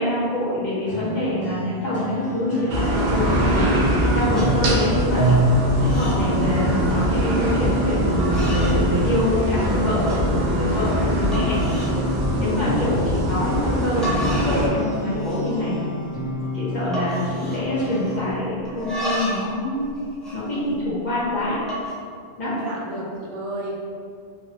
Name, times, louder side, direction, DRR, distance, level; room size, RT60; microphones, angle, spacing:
voice 1, 0.0-5.4 5.8-11.6 12.4-15.9 16.5-19.9 20.3-21.6 22.4-22.5, left 1 dB, 45° left, -9 dB, 0.8 m, -25 dB
sound 1, 0.9-18.3, left 1 dB, 80° left, 1.4 m, -31 dB
sound 2, 2.7-14.7, equal, 60° right, 0.5 m, -22 dB
sound 3, 4.3-4.5 4.9-5.3 5.6-6.2 6.5-6.9 7.6-7.7 8.2-8.8 9.2-9.7 10.1-10.2 10.7-10.8 11.3-12.0 12.4-12.6 13.7-13.8 14.0-14.7 15.0-15.5 15.8-15.9 16.2-16.5 16.9-18.3 18.7-19.5 19.8-21.1 21.6-21.9, equal, ahead, 0.4 m, -33 dB
voice 2, 12.4-12.8 22.5-23.7, right 2 dB, 90° right, -3 dB, 1.0 m, -32 dB
3.2 x 2.0 x 2.7 m, 2.1 s
omnidirectional pair, 1.2 m